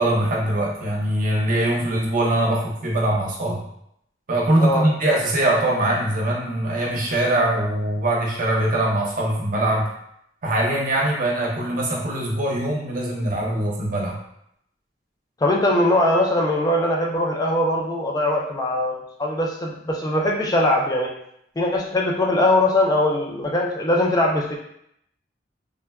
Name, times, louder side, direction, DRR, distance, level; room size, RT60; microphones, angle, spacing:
voice 1, 0.0-3.6 4.3-9.9 10.4-14.2, right 1 dB, 50° right, -2 dB, 0.7 m, -22 dB
voice 2, 15.4-21.1 21.6-24.5, left 1 dB, 20° left, 0 dB, 0.4 m, -21 dB
3.6 x 2.1 x 2.2 m, 0.74 s
head